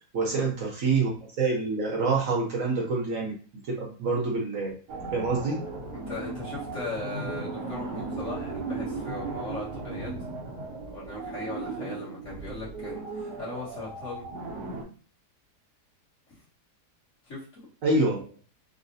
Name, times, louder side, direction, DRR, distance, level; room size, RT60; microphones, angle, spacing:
voice 1, 0.1-3.4 3.7-4.8 5.1-5.6 17.8-18.3, right 3 dB, 60° right, -1 dB, 1.0 m, -26 dB
sound 1, 4.9-14.8, right 3 dB, 80° right, 1.3 m, -36 dB
voice 2, 5.9-10.1 10.9-14.3 16.3-16.4 17.3-17.7, left 3 dB, 50° left, -8 dB, 1.7 m, -39 dB
3.9 x 2.1 x 2.6 m, 0.39 s
omnidirectional pair, 1.7 m